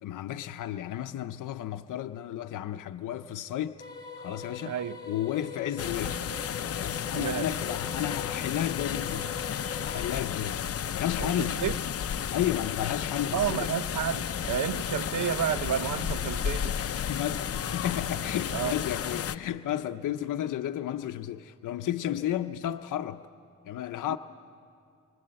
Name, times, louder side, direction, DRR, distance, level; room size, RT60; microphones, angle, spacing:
voice 1, 0.0-3.8 4.2-4.8 5.1-6.2 6.8-9.3 9.8-10.6 10.9-11.7 12.3-13.7 16.8-23.3 23.6-24.2, left 11 dB, 90° left, 0.7 m, -33 dB
sound 1, 3.8-10.0, left 4 dB, 15° left, 4.4 m, -42 dB
voice 2, 4.7-5.0 7.1-7.5 11.2-11.7 13.3-16.7 18.5-18.8 24.1-24.2, right 9 dB, 80° right, 0.8 m, -31 dB
sound 2, 5.8-19.4, left 8 dB, 50° left, 0.7 m, -32 dB
25.0 x 25.0 x 7.6 m
cardioid pair, 105°, 30 cm